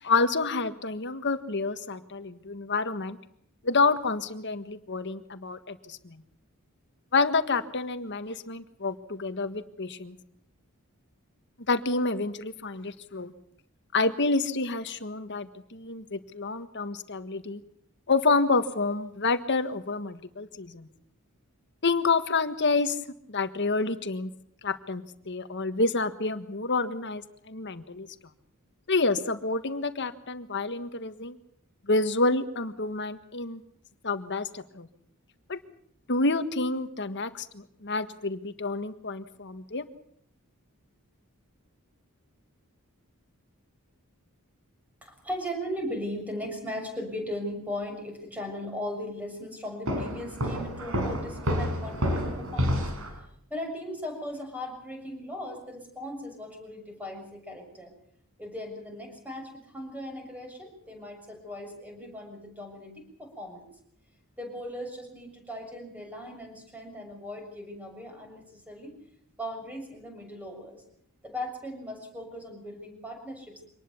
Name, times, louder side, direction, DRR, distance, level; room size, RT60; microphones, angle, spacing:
voice 1, 0.0-3.2 3.6-6.2 7.1-10.2 11.7-13.3 13.9-17.6 18.1-20.9 21.8-23.0 23.3-24.3 24.6-28.1 28.9-31.4 31.9-33.6 34.0-34.9 35.5-35.6 36.1-39.9, left 3 dB, 55° left, 10 dB, 1.6 m, -28 dB
voice 2, 45.0-52.8 53.5-57.9 58.4-63.7 64.4-69.0 69.4-70.8 71.2-73.6, left 1 dB, 5° right, 3 dB, 6.7 m, -38 dB
Walk footsteps, 49.9-53.2, equal, 65° right, 5.6 m, -29 dB
25.0 x 19.5 x 7.1 m, 0.68 s
head